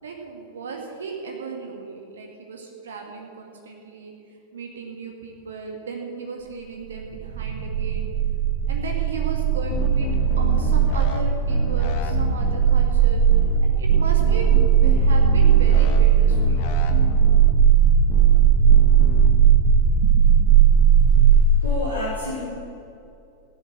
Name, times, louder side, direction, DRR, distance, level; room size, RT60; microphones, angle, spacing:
voice 1, 0.0-4.1 4.5-8.1 8.7-10.1 10.4-13.2 13.6-16.6 20.0-20.2, right 5 dB, 65° right, 2 dB, 1.9 m, -35 dB
sound 1, 6.9-21.3, right 8 dB, 45° right, 1.9 m, -17 dB
sound 2, 9.7-11.2 11.5-12.7 13.3-13.6 13.9-16.0 16.3-17.5 18.1-18.4 18.7-19.3, left 6 dB, 50° left, 1.2 m, -30 dB
voice 2, 21.6-22.4, left 1 dB, 90° right, -6 dB, 2.6 m, -28 dB
16.0 x 7.2 x 8.0 m, 2.5 s
figure-of-eight pair, 90°, 0 cm